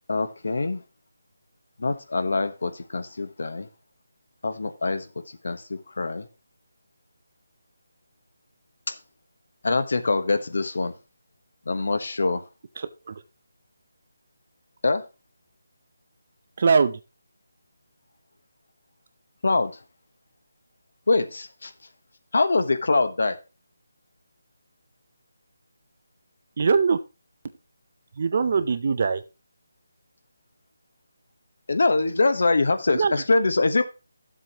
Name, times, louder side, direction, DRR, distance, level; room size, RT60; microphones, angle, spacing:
voice 1, 0.1-0.8 1.8-3.7 4.4-6.2 8.9-9.0 9.6-10.9 11.7-12.4 14.8-15.0 19.4-19.8 21.1-21.7 22.3-23.4 31.7-33.8, left 3 dB, 50° left, 1.0 m, -24 dB
voice 2, 12.8-13.2 16.6-17.0 26.6-27.0 28.2-29.2 32.9-33.1, right 5 dB, 30° right, 0.5 m, -22 dB
12.0 x 7.5 x 2.9 m
figure-of-eight pair, 180°, 0 cm